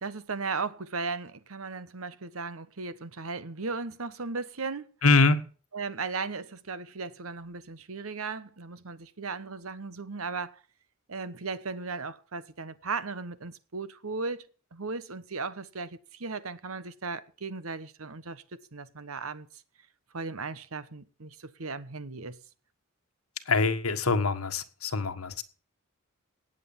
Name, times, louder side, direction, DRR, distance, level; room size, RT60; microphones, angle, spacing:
voice 1, 0.0-4.9 5.7-10.6 11.1-14.4 14.7-19.5 20.1-22.4, right 4 dB, 75° right, 1.1 m, -36 dB
voice 2, 5.0-5.4 23.5-25.4, left 3 dB, 85° left, 1.6 m, -24 dB
18.5 x 7.9 x 7.3 m
head